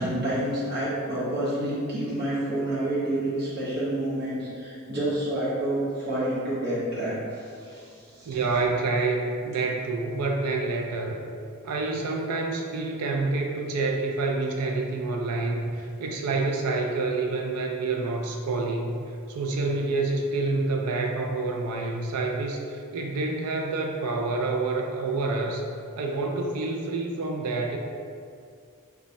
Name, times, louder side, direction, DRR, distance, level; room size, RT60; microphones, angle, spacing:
voice 1, 0.0-8.4, right 1 dB, 50° right, -9 dB, 1.2 m, -29 dB
voice 2, 8.3-11.2 11.6-19.0 19.3-25.6 25.9-27.8, right 3 dB, 85° right, 1 dB, 0.4 m, -28 dB
3.1 x 2.2 x 4.0 m, 2.3 s
head